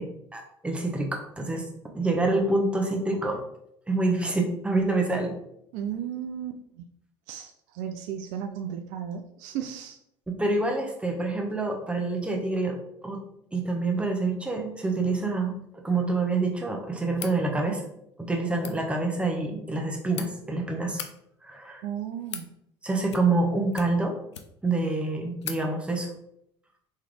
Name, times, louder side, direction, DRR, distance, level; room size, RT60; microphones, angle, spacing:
voice 1, 0.0-1.7 1.9-3.4 3.9-5.4 10.3-12.8 13.0-13.2 13.5-17.8 18.2-21.0 21.4-21.8 22.8-24.2 24.6-26.1, right 3 dB, 10° right, 1 dB, 0.9 m, -27 dB
voice 2, 5.7-6.8 7.3-10.0 21.8-22.5, right 9 dB, 60° right, 6 dB, 0.4 m, -35 dB
sound 1, 17.1-17.4 18.5-18.8 19.7-20.3 20.8-21.1 21.9-22.5 23.1-23.4 23.7-24.7 25.0-25.1 25.4-25.6, left 8 dB, 85° left, 0.4 m, -39 dB
3.7 x 3.1 x 3.4 m, 0.76 s
hypercardioid pair, 65°, 14 cm